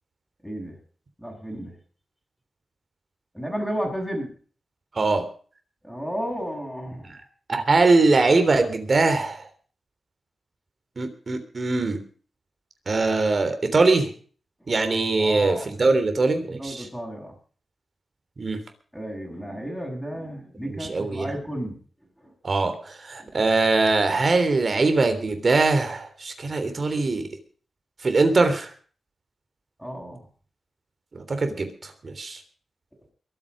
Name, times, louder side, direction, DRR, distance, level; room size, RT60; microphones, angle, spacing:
voice 1, 0.4-0.7 1.2-1.7 3.3-4.3 5.8-7.2 15.2-15.7 16.5-17.3 18.9-21.8 22.2-22.3 23.2-23.3 29.8-30.2, equal, ahead, -2 dB, 6.4 m, -32 dB
voice 2, 5.0-5.3 7.1-7.2 7.5-9.5 11.0-12.0 12.9-14.1 14.7-16.9 18.4-18.6 20.7-21.3 22.4-27.2 28.0-28.7 31.1-32.4, right 3 dB, 45° right, 8 dB, 3.5 m, -22 dB
22.5 x 9.0 x 5.2 m, 0.42 s
wide cardioid pair, 85°, 0 cm